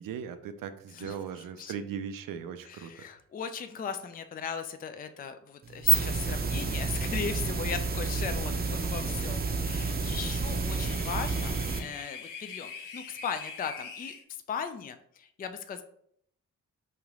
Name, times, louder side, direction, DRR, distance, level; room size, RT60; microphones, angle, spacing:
voice 1, 0.0-3.0, right 7 dB, 75° right, 10 dB, 0.5 m, -38 dB
voice 2, 2.7-14.1 14.5-15.8, left 6 dB, 25° left, 9 dB, 0.4 m, -38 dB
sound 1, 5.6-11.8, right 4 dB, 30° right, 0.6 m, -29 dB
sound 2, 10.0-14.2, left 5 dB, 65° left, 0.7 m, -44 dB
3.2 x 2.9 x 3.6 m, 0.68 s
cardioid pair, 65°, 34 cm